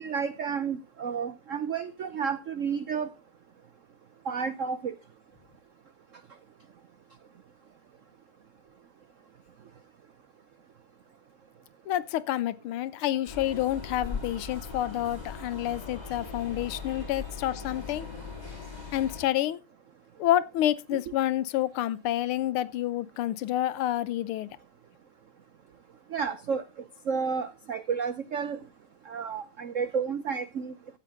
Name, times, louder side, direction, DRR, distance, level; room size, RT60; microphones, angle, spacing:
voice 1, 0.0-3.1 4.3-4.9 20.9-21.0 26.1-26.6 27.1-28.6 29.1-30.7, right 6 dB, 90° right, 0.6 m, -31 dB
voice 2, 11.9-18.1 18.9-19.6 20.2-24.5, left 13 dB, 85° left, 1.6 m, -28 dB
sound 1, 13.3-19.3, left 4 dB, 20° left, 3.6 m, -39 dB
14.5 x 8.3 x 3.7 m
omnidirectional pair, 2.3 m